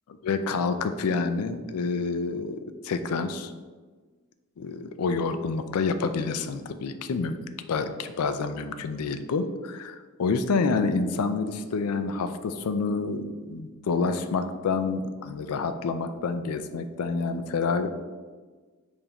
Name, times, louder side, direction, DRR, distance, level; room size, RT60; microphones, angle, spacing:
voice 1, 0.2-2.6 2.8-3.5 4.6-7.4 7.7-17.9, left 4 dB, 80° left, 9 dB, 0.4 m, -28 dB
6.8 x 2.6 x 2.9 m, 1.4 s
head